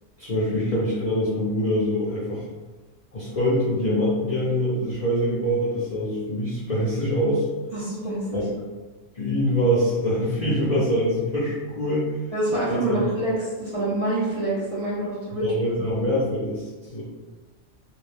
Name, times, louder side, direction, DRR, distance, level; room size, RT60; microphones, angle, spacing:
voice 1, 0.2-2.4 3.1-7.5 8.3-8.4 9.1-12.1 12.7-13.0 15.4-17.0, equal, 50° left, -8 dB, 0.5 m, -24 dB
voice 2, 7.7-8.4 12.3-16.1, right 1 dB, 45° right, -8 dB, 0.5 m, -27 dB
2.5 x 2.1 x 3.1 m, 1.3 s
omnidirectional pair, 1.3 m